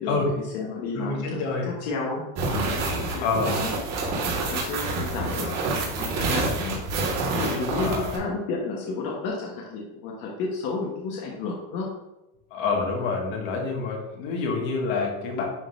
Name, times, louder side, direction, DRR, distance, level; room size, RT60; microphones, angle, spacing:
voice 1, 0.0-2.2 2.5-3.8 4.5-6.8 7.3-11.9, left 3 dB, 55° left, -2 dB, 1.2 m, -32 dB
voice 2, 0.9-1.7 3.2-3.6 7.1-8.1 12.5-15.5, left 4 dB, 75° left, 0 dB, 1.8 m, -28 dB
sound 1, 2.4-8.2, right 3 dB, 50° right, 1.8 m, -27 dB
10.5 x 4.0 x 2.6 m, 0.97 s
cardioid pair, 160°, 33 cm